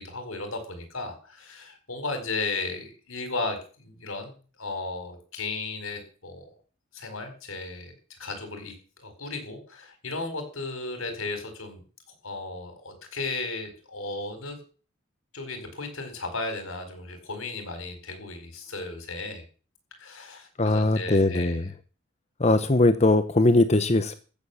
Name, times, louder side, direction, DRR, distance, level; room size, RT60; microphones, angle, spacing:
voice 1, 0.0-4.3 4.6-6.5 6.9-7.9 8.2-11.8 12.2-14.6 15.3-19.4 20.0-21.6, left 3 dB, 75° left, 7 dB, 4.7 m, -35 dB
voice 2, 20.6-21.7 22.4-24.2, left 2 dB, 30° left, 11 dB, 0.8 m, -21 dB
14.5 x 7.4 x 7.0 m, 0.38 s
head